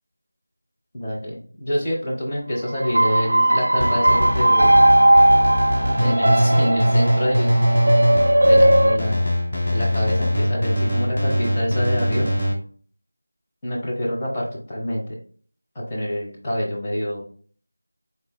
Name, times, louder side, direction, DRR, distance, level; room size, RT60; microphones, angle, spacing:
voice 1, 0.9-4.7 5.8-7.6 8.5-9.3 9.7-12.3 13.6-15.0 15.7-17.2, equal, 10° left, -6 dB, 0.7 m, -26 dB
sound 1, 2.8-9.0, right 1 dB, 65° right, 0.4 m, -17 dB
sound 2, 3.8-12.5, equal, 30° left, 1.0 m, -22 dB
4.2 x 3.1 x 2.2 m, 0.44 s
figure-of-eight pair, 180°, 0 cm